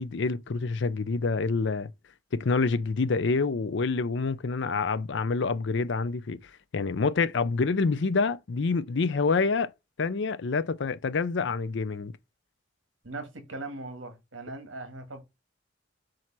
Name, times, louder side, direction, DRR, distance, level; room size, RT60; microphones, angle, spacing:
voice 1, 0.0-1.9 2.3-6.4 6.7-9.7 10.0-12.1, left 4 dB, 65° left, 0.5 m, -27 dB
voice 2, 13.0-15.2, right 2 dB, 80° right, 1.8 m, -39 dB
7.6 x 2.9 x 5.9 m
head